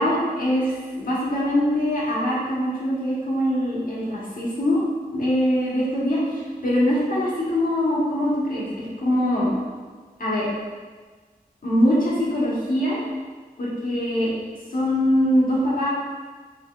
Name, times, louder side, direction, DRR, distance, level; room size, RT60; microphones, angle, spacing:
voice 1, 0.0-4.8 5.1-9.5 10.2-10.5 11.6-13.0 13.6-14.3 14.7-15.9, equal, 65° left, -7 dB, 1.3 m, -23 dB
4.9 x 3.3 x 2.5 m, 1.5 s
wide cardioid pair, 60°, 16 cm